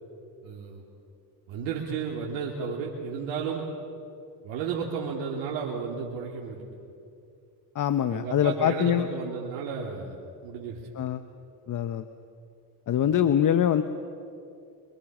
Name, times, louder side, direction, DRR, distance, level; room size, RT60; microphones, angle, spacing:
voice 1, 0.4-0.8 1.5-3.6 4.4-6.6 8.1-10.1 10.4-10.8, right 6 dB, 80° right, -3 dB, 3.0 m, -33 dB
voice 2, 7.7-9.1 11.0-11.2 11.7-12.0 12.9-13.8, left 10 dB, 45° left, 11 dB, 1.1 m, -24 dB
23.5 x 23.5 x 7.4 m, 2.6 s
supercardioid pair, 80°, 44 cm